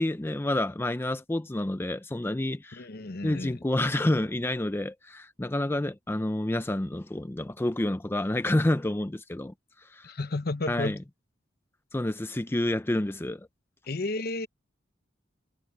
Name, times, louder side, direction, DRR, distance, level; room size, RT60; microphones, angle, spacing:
voice 1, 0.0-2.9 3.2-10.1 10.7-11.0 11.9-13.5, left 1 dB, 10° left, 0.5 m, -29 dB
voice 2, 2.7-3.6 10.0-11.0 13.9-14.5, left 2 dB, 55° left, 1.0 m, -32 dB
head